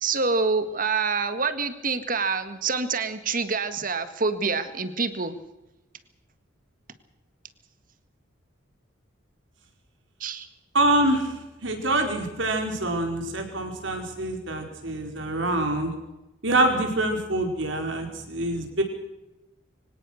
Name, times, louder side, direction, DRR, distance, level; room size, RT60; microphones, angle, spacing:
voice 1, 0.0-5.4 10.2-10.5, right 4 dB, 45° right, 11 dB, 1.7 m, -26 dB
voice 2, 10.7-15.9 16.4-18.8, right 1 dB, 75° right, 4 dB, 4.7 m, -25 dB
24.0 x 18.0 x 6.5 m, 0.98 s
head